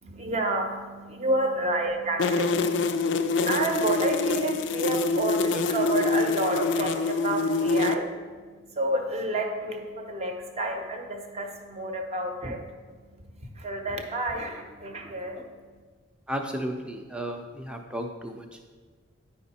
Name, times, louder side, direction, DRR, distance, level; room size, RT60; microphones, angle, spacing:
voice 1, 0.0-8.1 8.7-12.6 13.5-15.5, right 2 dB, 30° right, 3 dB, 0.7 m, -30 dB
sound 1, 2.2-7.9, left 3 dB, 55° left, 0.4 m, -25 dB
voice 2, 16.3-18.5, equal, 5° right, 4 dB, 0.5 m, -33 dB
9.0 x 5.1 x 4.2 m, 1.5 s
head